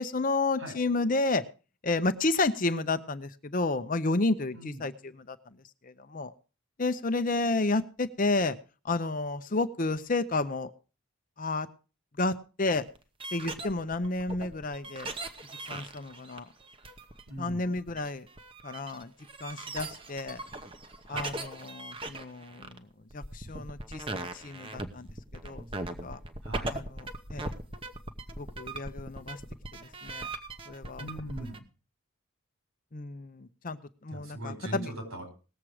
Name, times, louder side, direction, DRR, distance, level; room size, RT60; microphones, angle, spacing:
voice 1, 0.0-1.4 1.8-5.4 5.8-6.3 6.8-8.5 8.8-10.7 11.4-11.7 12.2-12.8 13.3-15.2 15.7-16.5 17.4-18.3 18.6-19.1 19.4-20.4 21.1-22.8 23.1-25.1 25.4-25.6 26.0-26.2 26.7-27.5 28.4-29.4 30.0-30.3 30.7-31.0 32.9-33.8 34.0-34.9, left 3 dB, 40° left, 11 dB, 0.7 m, -31 dB
sound 1, 12.9-31.6, right 2 dB, 25° right, 0.8 m, -40 dB
voice 2, 17.3-17.7 21.1-21.3 26.4-26.8 31.0-31.6 34.1-35.3, right 1 dB, 75° right, 4 dB, 4.7 m, -40 dB
18.5 x 7.4 x 4.8 m, 0.35 s
head